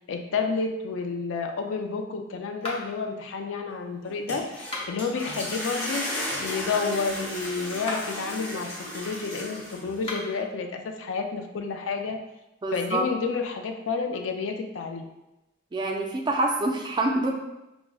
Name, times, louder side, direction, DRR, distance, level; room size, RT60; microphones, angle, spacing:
voice 1, 0.1-6.1 6.4-12.2 12.7-15.1, left 4 dB, 90° left, 5 dB, 0.4 m, -30 dB
sound 1, 2.6-3.1 4.6-5.2 7.7-8.2 9.9-10.4, left 2 dB, 30° left, 0.6 m, -36 dB
sound 2, 4.1-10.1, left 1 dB, 60° left, 1.1 m, -35 dB
voice 2, 12.6-13.0 15.7-17.3, right 2 dB, 25° right, 2 dB, 0.3 m, -26 dB
4.5 x 2.0 x 2.3 m, 0.96 s
head